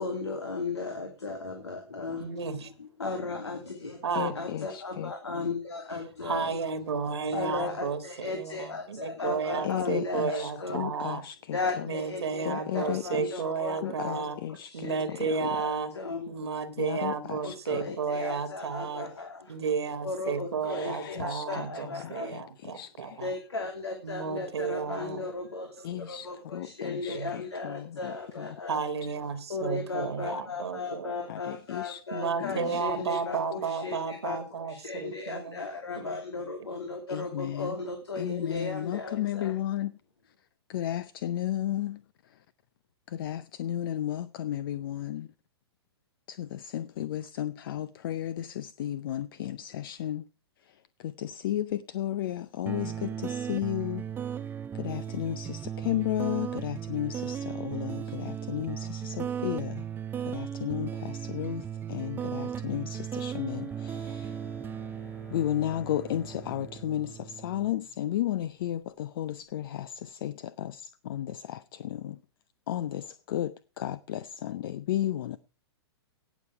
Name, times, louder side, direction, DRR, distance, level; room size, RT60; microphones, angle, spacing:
voice 1, 0.0-6.6 7.3-10.9 11.5-14.3 14.7-16.2 17.4-19.6 20.0-22.3 23.2-28.8 29.5-39.5, left 3 dB, 85° left, 2.7 m, -36 dB
voice 2, 2.2-2.7 4.0-4.3 6.2-11.2 11.8-14.4 14.7-15.9 16.3-19.1 19.5-23.3 24.0-25.3 25.9-26.0 27.1-27.3 28.7-31.2 32.1-35.6 36.0-36.2, right 5 dB, 75° right, 1.6 m, -32 dB
voice 3, 4.1-5.1 9.6-12.0 12.4-13.4 13.8-15.5 16.8-18.0 20.7-23.2 25.8-28.6 31.3-32.0 32.4-33.2 37.1-37.8 38.2-40.0 40.3-40.4 40.7-42.4 43.1-45.3 46.3-50.3 50.6-54.1 54.7-59.9 60.2-64.4 65.3-72.2 72.7-75.4, left 12 dB, 55° left, 0.6 m, -34 dB
sound 1, 52.7-67.7, right 8 dB, 15° right, 0.5 m, -36 dB
Bowed string instrument, 63.4-68.5, equal, 20° left, 2.9 m, -53 dB
17.5 x 7.2 x 4.6 m
hypercardioid pair, 120°, 14 cm